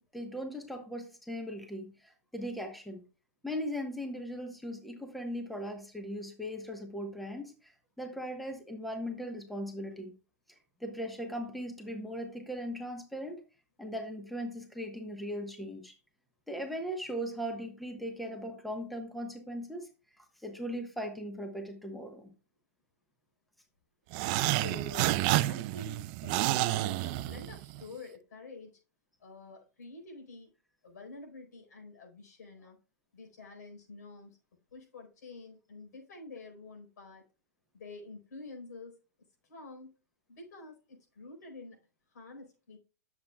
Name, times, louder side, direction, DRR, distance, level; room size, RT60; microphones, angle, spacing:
voice 1, 0.0-3.0 3.4-7.7 8.0-10.1 10.8-13.4 13.8-15.9 16.5-19.9 20.4-22.3, equal, ahead, 4 dB, 1.1 m, -38 dB
sound 1, 24.1-27.8, right 17 dB, 35° right, 0.4 m, -29 dB
voice 2, 24.6-28.8 29.2-30.5 30.8-32.8 33.1-34.4 34.7-37.2 37.7-39.0 39.4-39.9 40.3-41.8 42.1-42.8, left 3 dB, 85° left, 3 dB, 4.2 m, -48 dB
11.0 x 7.2 x 2.3 m, 0.33 s
hypercardioid pair, 150°, 9 cm